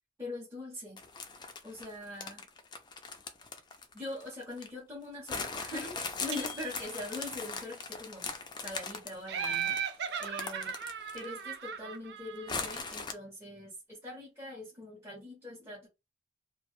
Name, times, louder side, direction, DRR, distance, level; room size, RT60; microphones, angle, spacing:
voice 1, 0.2-1.0 1.6-2.4 3.9-9.8 10.2-10.7 11.1-15.9, left 2 dB, 15° right, -5 dB, 0.7 m, -42 dB
sound 1, 1.0-4.7 5.3-11.4 11.7-11.8 12.5-13.1, left 4 dB, 25° left, 0.4 m, -40 dB
Small Bell, 6.3-7.4, right 3 dB, 90° right, 0.9 m, -46 dB
Laughter, 9.3-12.9, right 7 dB, 65° right, 0.4 m, -37 dB
2.4 x 2.1 x 3.0 m, 0.25 s
head